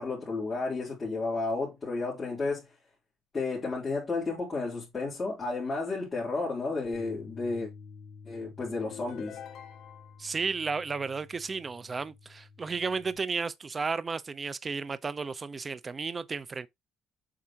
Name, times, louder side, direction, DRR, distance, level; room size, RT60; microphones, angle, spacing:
voice 1, 0.0-2.6 3.3-7.7 8.3-9.4, left 3 dB, 25° left, 3.6 m, -32 dB
Bass guitar, 6.9-13.2, left 5 dB, 80° left, 2.7 m, -51 dB
sound 1, 8.8-10.3, left 9 dB, 60° left, 1.5 m, -45 dB
voice 2, 10.2-16.7, right 4 dB, 25° right, 0.7 m, -33 dB
7.7 x 4.9 x 2.9 m
cardioid pair, 120°, 0 cm